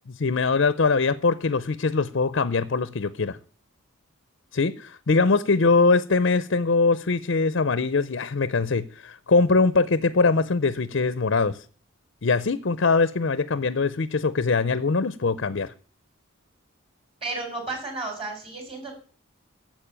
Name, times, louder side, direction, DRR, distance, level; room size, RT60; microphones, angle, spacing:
voice 1, 0.2-3.4 4.5-11.6 12.2-15.7, left 4 dB, 55° left, 15 dB, 0.6 m, -22 dB
voice 2, 17.2-18.9, right 3 dB, 25° right, 4 dB, 4.4 m, -33 dB
11.5 x 7.5 x 8.8 m, 0.43 s
head